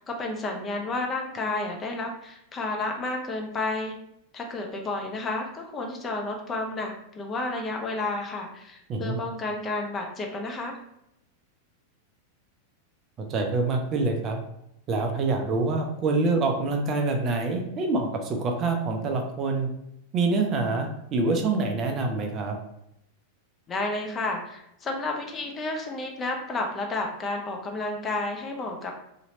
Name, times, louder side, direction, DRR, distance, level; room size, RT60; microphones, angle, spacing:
voice 1, 0.0-3.9 4.3-10.8 23.7-28.9, left 2 dB, 25° left, 2 dB, 0.5 m, -31 dB
voice 2, 13.2-14.4 14.9-19.7 20.1-22.6, right 3 dB, 30° right, 3 dB, 0.4 m, -26 dB
2.9 x 2.8 x 2.7 m, 0.79 s
figure-of-eight pair, 90°, 0 cm